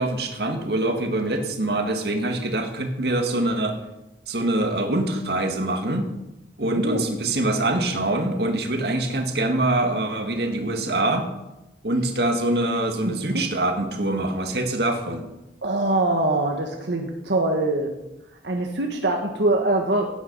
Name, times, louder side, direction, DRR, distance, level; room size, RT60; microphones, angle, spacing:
voice 1, 0.0-3.8 4.3-6.1 6.6-11.3 11.8-15.3, right 2 dB, 65° right, 4 dB, 1.9 m, -24 dB
voice 2, 6.6-7.1 13.0-13.5 15.6-17.9 18.4-20.1, right 2 dB, 85° right, 2 dB, 1.5 m, -23 dB
17.0 x 9.5 x 5.5 m, 0.95 s
head